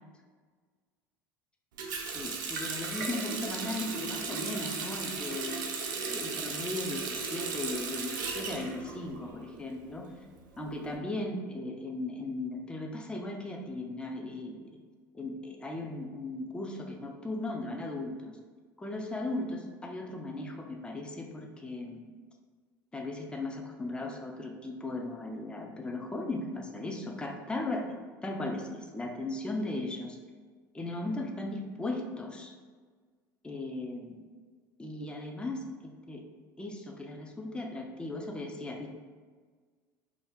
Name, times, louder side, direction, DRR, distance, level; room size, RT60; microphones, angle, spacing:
Water tap faucet, 1.8-9.5 9.8-10.9, right 4 dB, 70° right, 0.4 m, -36 dB
voice 1, 2.1-5.6 6.0-10.1 10.6-14.6 15.1-18.4 18.8-22.0 22.9-28.0 28.2-30.2 30.7-32.5 33.4-34.2 34.8-36.3 36.6-38.9, left 2 dB, 10° left, 2 dB, 0.4 m, -37 dB
2.5 x 2.2 x 3.4 m, 1.5 s
figure-of-eight pair, 70°, 11 cm